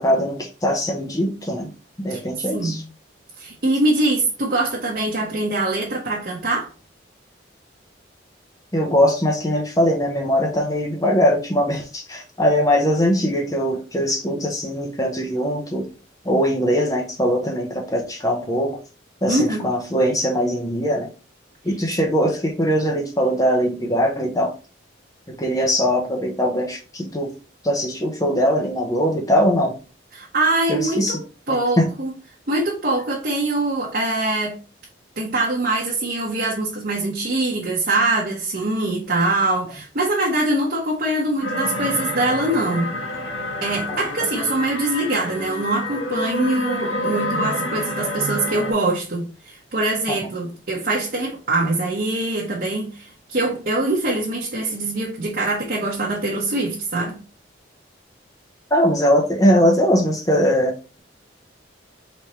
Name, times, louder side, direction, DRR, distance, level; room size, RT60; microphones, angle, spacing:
voice 1, 0.0-1.7 2.0-2.8 8.7-15.9 16.2-18.8 19.2-21.1 21.6-24.5 25.3-27.3 27.6-29.8 30.7-31.2 31.5-31.9 43.9-44.0 50.1-50.2 58.7-61.0, equal, 20° left, 0.8 m, -21 dB
voice 2, 3.4-6.7 19.3-19.7 30.1-31.2 31.5-32.1 32.5-34.5 35.2-42.9 43.6-57.2, right 2 dB, 50° right, 1.0 m, -23 dB
sound 1, 41.4-48.7, left 1 dB, 90° left, 1.2 m, -28 dB
3.5 x 3.2 x 4.2 m
head